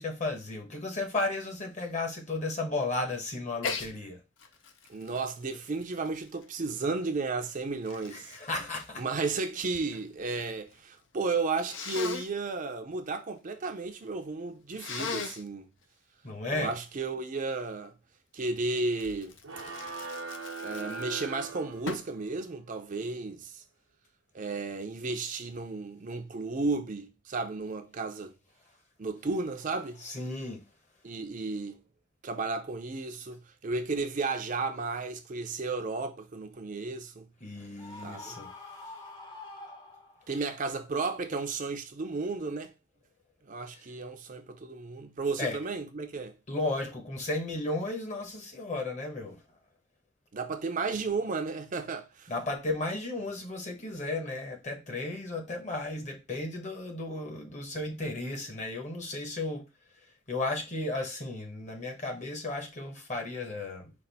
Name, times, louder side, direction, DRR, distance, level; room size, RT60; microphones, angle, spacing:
voice 1, 0.0-4.2 8.1-9.0 16.2-16.8 30.0-30.6 37.4-38.5 45.4-45.6 46.5-49.4 52.3-59.7 60.3-63.9, left 2 dB, 35° left, 1.1 m, -34 dB
Sneeze, 3.6-3.9 4.4-6.7 7.4-9.9 10.2-10.8 11.7-12.3 14.7-15.5 19.0-21.3 21.9-22.2, left 5 dB, 65° left, 0.6 m, -39 dB
voice 2, 4.9-8.3 9.0-15.7 16.5-18.0 18.3-19.3 20.6-23.6 24.3-28.3 29.0-30.0 31.0-31.8 32.2-37.3 38.0-38.4 40.3-42.7 43.4-46.4 50.3-52.3, right 3 dB, 40° right, 0.5 m, -33 dB
sound 1, 19.4-22.3, right 4 dB, 90° right, 0.9 m, -40 dB
Screaming, 37.8-40.5, left 2 dB, 20° left, 0.7 m, -46 dB
5.2 x 2.5 x 4.0 m
head